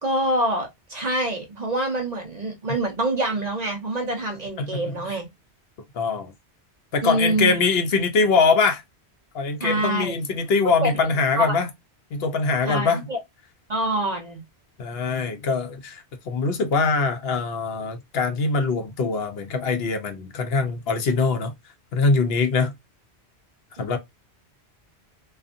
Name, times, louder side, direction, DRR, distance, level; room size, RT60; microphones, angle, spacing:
voice 1, 0.0-5.3 7.0-7.6 9.6-10.2 10.8-10.9 11.4-11.6 12.6-13.2 13.7-14.4, right 1 dB, 45° right, 0.7 m, -25 dB
voice 2, 4.6-4.9 5.9-6.3 6.9-8.8 9.3-11.7 12.1-13.0 14.8-21.5 21.9-22.7 23.8-24.0, left 4 dB, 70° left, 0.8 m, -23 dB
2.5 x 2.4 x 2.5 m
omnidirectional pair, 1.1 m